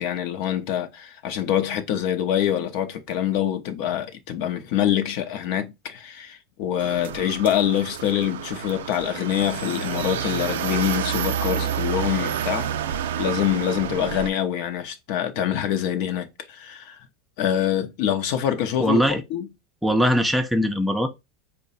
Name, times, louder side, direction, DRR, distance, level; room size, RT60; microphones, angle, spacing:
voice 1, 0.0-12.7 13.2-17.0 17.4-19.0 19.3-19.5, left 10 dB, 65° left, 0.7 m, -25 dB
sound 1, 6.8-14.3, right 9 dB, 85° right, 0.3 m, -29 dB
voice 2, 18.8-19.2 19.8-21.1, equal, 5° right, 0.6 m, -21 dB
4.5 x 2.2 x 4.0 m
hypercardioid pair, 105°, 0 cm